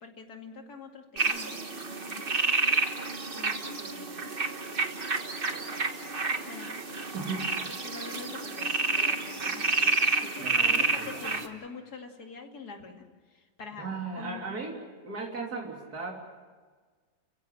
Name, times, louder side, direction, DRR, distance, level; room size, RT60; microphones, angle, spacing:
voice 1, 0.0-2.3 3.3-4.3 6.5-7.0 7.8-13.9 14.2-14.4, left 5 dB, 60° left, 3 dB, 2.9 m, -46 dB
sound 1, 1.2-11.5, right 3 dB, 35° right, 1.5 m, -29 dB
voice 2, 7.1-7.5 10.4-11.3 13.8-14.8 15.0-16.1, right 4 dB, 60° right, 0 dB, 3.7 m, -36 dB
30.0 x 16.0 x 7.7 m, 1.5 s
omnidirectional pair, 1.9 m